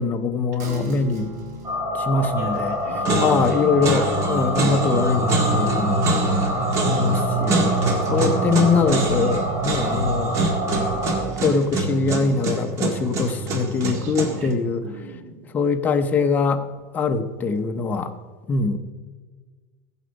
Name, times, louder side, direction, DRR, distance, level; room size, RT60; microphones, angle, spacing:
voice 1, 0.0-1.3 1.9-2.8 3.2-6.1 6.6-7.6 8.1-10.5 11.4-14.9 15.5-16.7 16.9-18.1 18.5-18.8, left 4 dB, 20° left, 6 dB, 0.7 m, -23 dB
sound 1, 0.6-7.6 8.0-8.1, right 3 dB, 90° right, 3.0 m, -41 dB
sound 2, 1.6-11.2, equal, 20° right, 2.5 m, -25 dB
sound 3, 2.4-2.7 3.1-14.5, right 2 dB, 35° right, 1.7 m, -25 dB
voice 2, 13.9-14.5 14.8-15.5, right 3 dB, 70° right, 5 dB, 1.8 m, -39 dB
15.0 x 8.1 x 5.2 m, 1.4 s
supercardioid pair, 155°, 9 cm